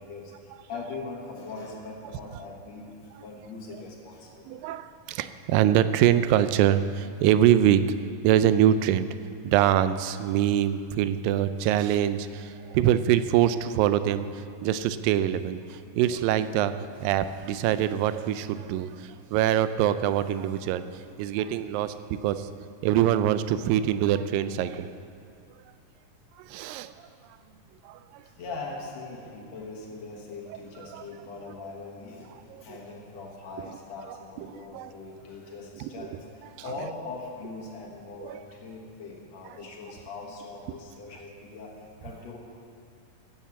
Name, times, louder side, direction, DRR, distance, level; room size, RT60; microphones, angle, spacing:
voice 1, 0.0-4.6 28.2-42.4, left 3 dB, 60° left, -1 dB, 2.2 m, -41 dB
voice 2, 4.5-7.8 8.2-9.1 9.5-14.3 14.6-16.7 17.0-21.9 22.2-22.5 22.8-24.9 26.5-26.9 27.9-28.0 30.9-31.0 32.5-32.6 34.6-34.9 35.8-36.1 38.2-38.4, right 11 dB, 85° right, 12 dB, 2.3 m, -24 dB
15.5 x 7.3 x 7.0 m, 2.4 s
omnidirectional pair, 4.0 m